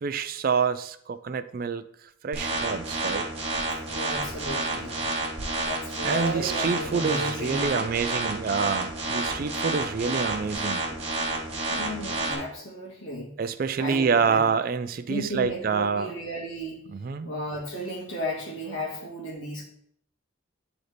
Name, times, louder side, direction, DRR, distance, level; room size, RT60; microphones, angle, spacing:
voice 1, 0.0-1.8 2.2-3.2 6.0-10.8 13.4-16.1 16.9-17.3, right 5 dB, 45° right, 12 dB, 0.3 m, -27 dB
sound 1, 2.3-12.3, right 2 dB, 30° right, 1.3 m, -30 dB
voice 2, 3.8-5.0 5.6-7.9 11.7-13.3 13.8-14.5 15.1-16.8 17.2-19.6, equal, 80° left, -2 dB, 1.9 m, -34 dB
9.3 x 3.9 x 3.4 m, 0.67 s
head